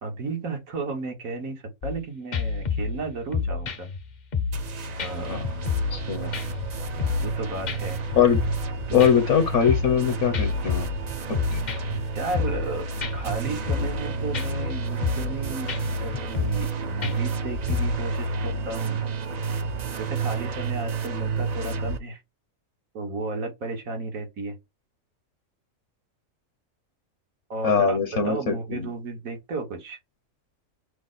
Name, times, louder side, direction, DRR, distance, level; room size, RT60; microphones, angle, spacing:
voice 1, 0.0-3.9 5.0-5.4 7.2-8.0 12.1-15.7 16.0-19.1 20.0-22.2 22.9-24.6 27.5-28.0 28.2-30.0, right 3 dB, 90° right, 1.8 m, -33 dB
sound 1, 1.8-2.0 2.3-4.7 5.0-5.1 5.4-6.0 6.3-7.4 7.7-7.8 8.1-8.7 9.0-10.0 10.3-12.0 12.3-12.7 13.0-13.1 13.5-14.0 14.3-14.7 15.0-15.4 15.7-15.8 16.1-16.7 17.0-18.1, left 5 dB, 45° left, 0.6 m, -29 dB
sound 2, 4.5-22.0, right 4 dB, 65° right, 0.4 m, -30 dB
voice 2, 5.9-6.3 8.2-8.4 8.9-10.9 11.5-11.6 27.6-28.9, left 7 dB, 65° left, 1.1 m, -22 dB
5.9 x 2.1 x 4.0 m
omnidirectional pair, 1.4 m